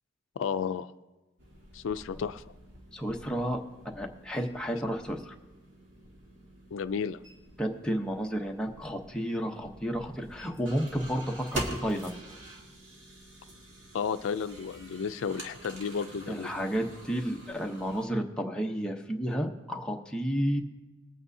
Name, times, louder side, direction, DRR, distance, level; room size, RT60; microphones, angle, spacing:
voice 1, 0.4-0.9 1.7-2.5 6.7-7.2 13.9-16.5, left 6 dB, 90° left, 12 dB, 0.4 m, -32 dB
sound 1, 1.4-18.1, right 1 dB, 80° right, 2.0 m, -45 dB
voice 2, 2.9-5.4 7.6-12.2 16.3-20.6, equal, 5° left, 1 dB, 0.8 m, -32 dB
21.0 x 8.6 x 2.7 m, 1.1 s
head